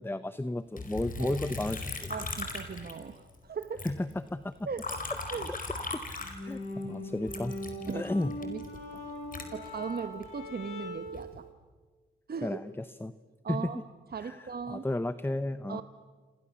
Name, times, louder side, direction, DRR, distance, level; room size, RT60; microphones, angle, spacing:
voice 1, 0.0-2.1 3.8-4.5 5.9-7.5 7.9-8.4 12.4-13.1 13.5-13.7 14.2-14.4 14.7-15.8, left 1 dB, 10° left, 13 dB, 0.9 m, -33 dB
Liquid, 0.8-3.4 3.6-6.8 7.3-10.3 10.9-11.4, left 3 dB, 40° left, 4.9 m, -39 dB
voice 2, 2.1-3.9 4.7-4.8 5.3-5.5 7.9-8.1 8.4-8.6 8.9-9.0 9.5-11.5 12.3-12.6 13.4-13.8 14.1-14.9 15.7-15.8, right 6 dB, 45° right, 10 dB, 1.2 m, -38 dB
sound 1, 6.2-11.2, left 1 dB, 85° left, 7.2 m, -40 dB
29.0 x 27.0 x 7.2 m, 1.5 s
cardioid pair, 65°, 21 cm